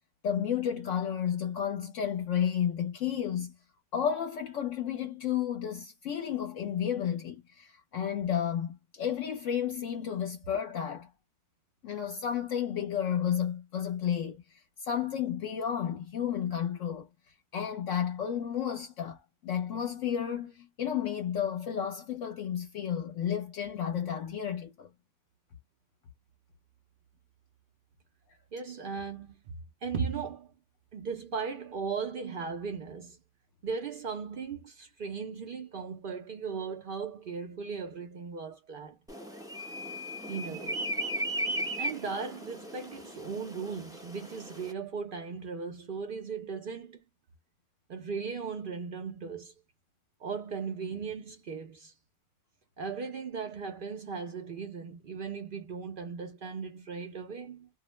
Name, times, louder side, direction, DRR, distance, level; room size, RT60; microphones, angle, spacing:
voice 1, 0.2-3.5 3.9-11.1 11.8-17.1 17.5-24.9, left 9 dB, 70° left, 0.9 m, -32 dB
voice 2, 28.5-29.4 29.8-30.5 30.9-33.2 33.6-39.0 40.3-40.8 41.8-47.0 47.9-49.5 50.2-51.9 52.8-57.7, right 5 dB, 60° right, 0.5 m, -37 dB
sound 1, 39.1-44.7, right 1 dB, 5° right, 0.4 m, -36 dB
2.5 x 2.0 x 3.0 m
omnidirectional pair, 1.4 m